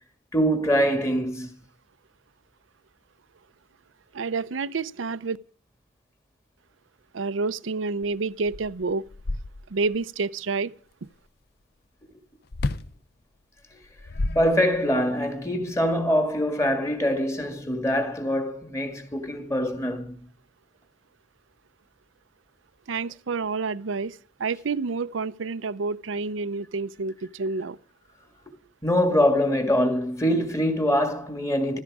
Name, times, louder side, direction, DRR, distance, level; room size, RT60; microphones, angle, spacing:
voice 1, 0.3-1.5 13.7-13.8 14.4-20.3 28.5-28.6 28.8-31.8, equal, 15° left, 2.0 m, -24 dB
voice 2, 4.1-5.4 7.1-9.0 9.7-10.7 22.9-27.8, right 4 dB, 80° right, 0.6 m, -29 dB
sound 1, 8.0-8.1 8.4-10.0 12.5-13.0 13.8-15.0, left 2 dB, 55° left, 0.6 m, -31 dB
15.5 x 14.0 x 4.8 m
head